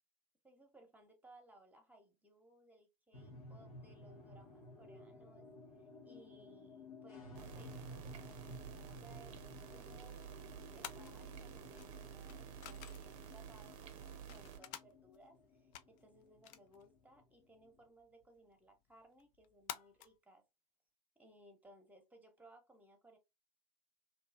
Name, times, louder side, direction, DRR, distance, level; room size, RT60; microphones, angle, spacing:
voice 1, 0.4-5.5 5.8-20.4 21.2-23.2, right 1 dB, 10° right, 0.9 m, -63 dB
sound 1, 3.1-17.8, left 1 dB, 80° left, 1.0 m, -55 dB
sound 2, 7.3-14.6, right 9 dB, 65° right, 0.6 m, -52 dB
sound 3, 10.8-20.2, left 11 dB, 45° left, 0.4 m, -56 dB
2.6 x 2.4 x 2.5 m
hypercardioid pair, 80°, 18 cm